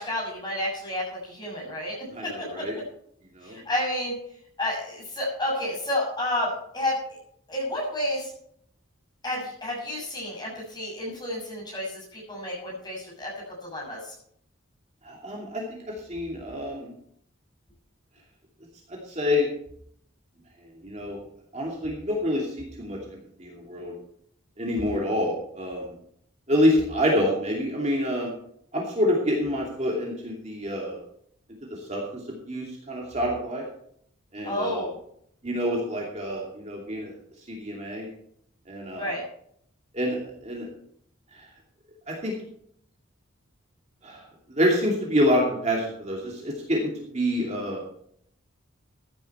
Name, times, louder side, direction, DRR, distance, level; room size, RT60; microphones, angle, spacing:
voice 1, 0.0-2.0 2.2-2.7 3.4-4.2 4.6-6.9 7.5-8.3 9.2-13.3 13.6-14.0 34.4-34.9 39.0-39.2, left 1 dB, 20° left, -3 dB, 6.9 m, -30 dB
voice 2, 2.1-2.8 3.4-3.6 15.0-16.9 18.9-19.5 20.8-21.2 21.5-23.9 24.6-25.9 26.5-28.3 28.7-31.0 31.7-32.0 32.5-33.6 34.3-34.9 35.4-37.1 37.5-38.1 38.7-39.1 39.9-40.7 41.3-41.4 42.1-42.3 44.0-44.2 44.5-47.8, equal, 30° right, -2 dB, 2.7 m, -27 dB
14.5 x 10.5 x 4.5 m, 0.67 s
head